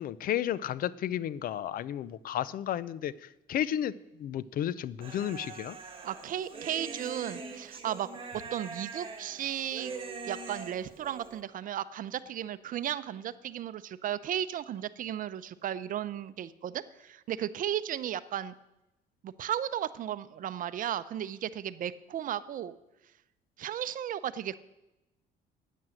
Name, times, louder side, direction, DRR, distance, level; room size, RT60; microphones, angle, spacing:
voice 1, 0.0-3.9 4.2-5.8, left 11 dB, 60° left, 20 dB, 0.5 m, -32 dB
Human voice, 5.0-11.4, right 4 dB, 30° right, 2.0 m, -43 dB
voice 2, 6.0-8.1 8.5-9.9 10.2-18.5 19.2-22.8 23.6-24.6, right 10 dB, 55° right, 15 dB, 0.7 m, -35 dB
11.0 x 9.3 x 7.7 m, 0.95 s
cardioid pair, 110°, 17 cm